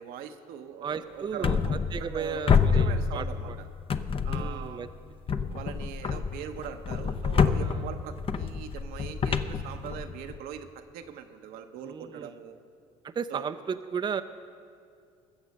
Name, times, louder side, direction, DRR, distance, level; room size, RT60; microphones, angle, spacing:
voice 1, 0.0-3.5 4.2-4.8 5.5-12.6 13.3-13.4, right 8 dB, 70° right, 6 dB, 0.9 m, -41 dB
voice 2, 0.8-1.6 1.9-3.6 4.3-4.9 7.6-7.8 11.8-12.3 13.0-14.2, right 6 dB, 30° right, 9 dB, 0.5 m, -34 dB
sound 1, 1.4-2.2 2.5-3.5 3.9-4.7 5.3-10.4, left 6 dB, 35° left, 0.7 m, -27 dB
20.5 x 7.2 x 5.3 m, 2.3 s
hypercardioid pair, 70°, 16 cm